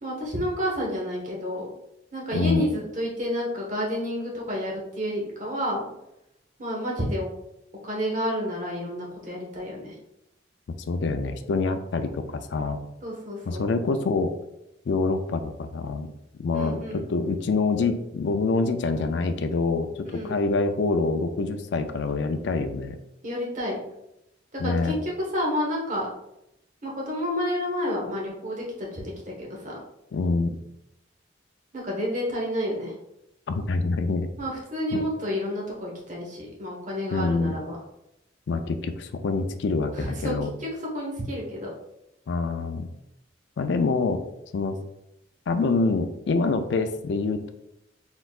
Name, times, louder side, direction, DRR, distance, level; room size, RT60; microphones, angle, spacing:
voice 1, 0.0-1.7 2.1-5.9 6.6-7.3 7.8-9.9 13.0-13.7 16.5-17.1 20.0-20.4 23.2-23.8 24.6-26.1 26.8-29.8 31.7-32.9 34.4-37.8 39.9-40.7 40.9-41.7, equal, 40° right, -2 dB, 1.1 m, -30 dB
voice 2, 2.3-2.6 10.9-12.8 13.5-14.3 14.9-16.1 16.4-23.0 24.6-25.0 30.1-30.6 33.5-34.3 34.9-35.0 37.1-37.6 38.5-40.5 42.3-42.9 43.6-44.2 44.5-44.8 45.5-47.5, left 3 dB, 65° left, 8 dB, 0.4 m, -26 dB
4.1 x 3.9 x 2.4 m, 0.84 s
head